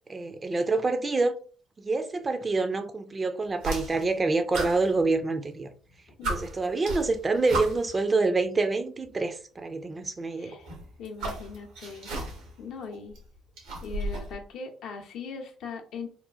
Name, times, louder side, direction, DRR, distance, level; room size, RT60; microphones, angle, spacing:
voice 1, 0.1-1.3 1.8-5.7 6.3-10.6, right 3 dB, 30° right, 0.4 m, -27 dB
sound 1, 3.6-4.2 4.5-5.6 5.9-6.0 6.2-8.0 9.0-9.1 10.5-12.6 12.9-14.3, right 2 dB, 70° right, 0.8 m, -34 dB
voice 2, 10.4-10.7 11.0-12.3 12.6-13.2 13.8-16.1, left 5 dB, 65° left, 0.6 m, -40 dB
3.0 x 2.2 x 2.3 m
hypercardioid pair, 50°, 0 cm